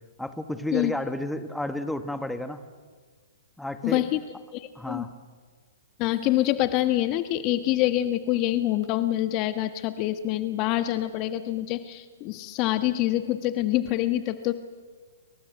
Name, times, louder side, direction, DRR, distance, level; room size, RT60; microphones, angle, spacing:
voice 1, 0.2-2.6 3.6-4.0 4.8-5.1, left 1 dB, 5° left, 8 dB, 1.8 m, -31 dB
voice 2, 3.8-4.2 4.5-5.0 6.0-14.5, left 14 dB, 35° left, 10 dB, 1.5 m, -26 dB
29.5 x 24.0 x 8.2 m, 1.5 s
hypercardioid pair, 130°, 0 cm